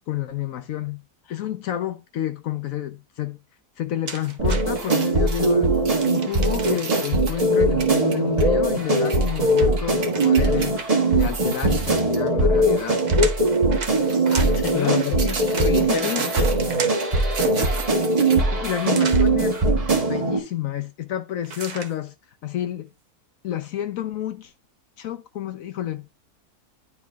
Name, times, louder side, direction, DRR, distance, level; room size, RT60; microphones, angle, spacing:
voice 1, 0.1-1.0 1.3-3.4 3.8-5.7 6.0-13.0 14.7-15.2 15.7-16.2 17.5-17.7 18.5-19.6 20.1-22.1 22.4-22.9 23.4-24.5 25.0-26.1, left 11 dB, 70° left, 1.0 m, -29 dB
sound 1, 4.0-5.1 5.9-7.1 8.9-11.2 12.5-17.2 18.9-19.3 21.4-21.9, right 5 dB, 45° right, 0.5 m, -36 dB
sound 2, 4.4-20.4, right 2 dB, 25° right, 0.9 m, -21 dB
sound 3, 4.7-10.7 11.1-12.3 12.7-12.9 13.7-18.9 19.3-19.4, right 4 dB, 80° right, 1.9 m, -34 dB
voice 2, 14.3-16.5, left 5 dB, 20° left, 0.6 m, -30 dB
10.0 x 4.6 x 2.3 m
omnidirectional pair, 1.6 m